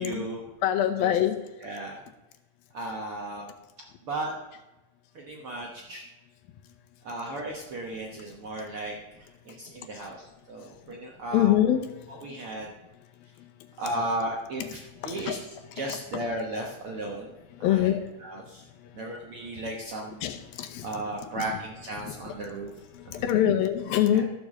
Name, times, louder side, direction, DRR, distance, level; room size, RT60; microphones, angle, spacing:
voice 1, 0.0-0.5 1.0-1.2 1.6-2.0 2.7-3.5 4.0-4.3 5.1-6.1 7.0-11.6 12.1-12.7 13.8-17.3 17.6-17.9 18.2-18.7 18.9-20.2 20.8-22.7 23.0-23.4 24.1-24.2, right 1 dB, 65° right, -1 dB, 1.4 m, -35 dB
voice 2, 0.6-1.4 11.3-11.8 15.0-15.4 17.6-18.0 20.2-21.0 21.4-21.5 22.0-22.1 22.9-24.2, left 11 dB, 80° left, 6 dB, 2.7 m, -24 dB
13.5 x 6.9 x 6.5 m, 1.1 s
omnidirectional pair, 4.2 m